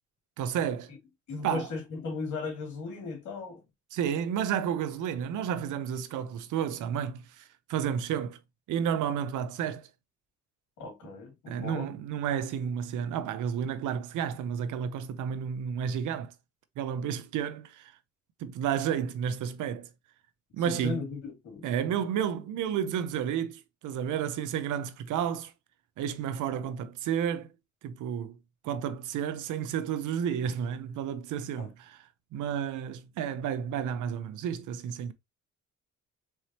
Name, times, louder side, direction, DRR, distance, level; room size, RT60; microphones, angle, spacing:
voice 1, 0.4-0.9 1.4-1.7 3.9-8.4 8.7-9.9 11.5-16.3 16.8-17.9 18.4-19.9 20.5-21.1 21.6-25.5 26.0-27.5 27.8-28.4 28.6-32.0 32.3-35.1, right 8 dB, 85° right, 0.7 m, -31 dB
voice 2, 1.3-3.6 10.8-11.9 20.6-21.7 31.6-31.7, left 4 dB, 80° left, 2.4 m, -37 dB
4.5 x 3.2 x 2.8 m
cardioid pair, 90°, 30 cm